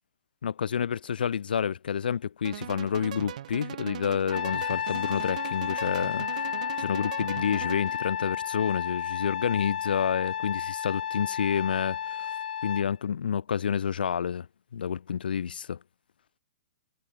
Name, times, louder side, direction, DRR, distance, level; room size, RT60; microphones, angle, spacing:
voice 1, 0.4-12.3 12.6-14.5 14.7-15.8, left 7 dB, 90° left, 0.9 m, -29 dB
sound 1, 2.4-8.1, right 11 dB, 55° right, 2.6 m, -39 dB
Trumpet, 4.3-12.9, left 9 dB, 65° left, 2.0 m, -32 dB
hypercardioid pair, 165°, 5 cm